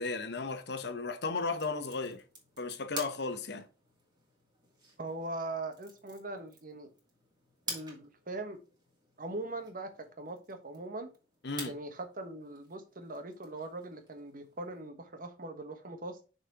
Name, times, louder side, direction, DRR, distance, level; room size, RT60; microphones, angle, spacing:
voice 1, 0.0-2.2 2.6-3.7 11.4-11.7, left 3 dB, 65° left, 1.0 m, -35 dB
sound 1, 1.4-14.9, right 2 dB, 25° right, 2.6 m, -49 dB
voice 2, 5.0-6.9 7.7-8.6 9.2-9.9 10.2-11.1 11.7-16.2, right 2 dB, 55° right, 1.3 m, -41 dB
6.6 x 4.2 x 4.6 m
head